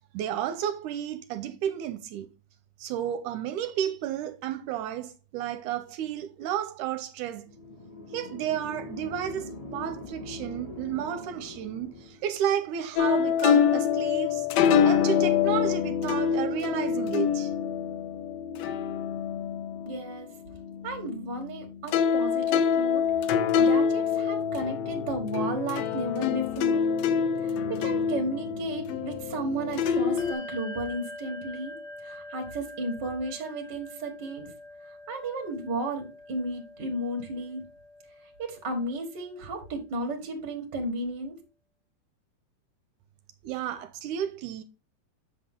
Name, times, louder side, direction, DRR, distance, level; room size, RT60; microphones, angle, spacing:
voice 1, 0.1-2.3 2.8-7.5 8.1-14.5 14.8-17.5 43.4-44.6, right 10 dB, 80° right, 2.0 m, -32 dB
sound 1, 7.4-12.4, left 2 dB, 45° left, 0.4 m, -42 dB
sound 2, 13.0-21.6 21.9-30.3, left 7 dB, 80° left, 1.6 m, -26 dB
voice 2, 19.9-20.3 20.8-23.1 23.6-26.8 27.4-31.7 32.0-34.5 35.1-37.6 38.4-41.4, right 2 dB, 40° right, 1.9 m, -33 dB
Bell, 30.2-40.2, left 1 dB, 30° left, 1.4 m, -45 dB
7.9 x 6.0 x 3.6 m
omnidirectional pair, 3.8 m